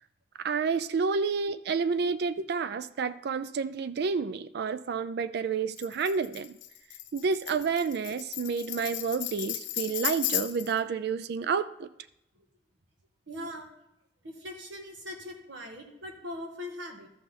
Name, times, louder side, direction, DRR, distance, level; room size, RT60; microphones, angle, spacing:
voice 1, 0.4-6.6 7.1-11.9, right 5 dB, 60° right, 13 dB, 0.4 m, -30 dB
Tambourine, 5.8-10.8, left 13 dB, 90° left, 0.7 m, -35 dB
voice 2, 13.3-13.7 14.2-17.1, left 1 dB, 80° right, 2 dB, 1.7 m, -41 dB
13.5 x 5.7 x 4.1 m, 0.85 s
head